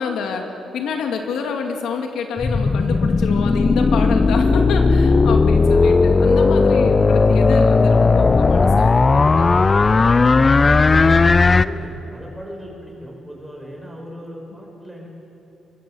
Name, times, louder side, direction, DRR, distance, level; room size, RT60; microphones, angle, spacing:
voice 1, 0.0-9.6, left 5 dB, 90° left, 3 dB, 2.4 m, -27 dB
sound 1, 2.4-11.6, left 4 dB, 30° left, 0.5 m, -15 dB
voice 2, 2.9-3.3 5.1-5.2 10.4-15.1, equal, 5° right, -1 dB, 6.4 m, -37 dB
24.5 x 21.0 x 7.2 m, 3.0 s
cardioid pair, 115°, 0 cm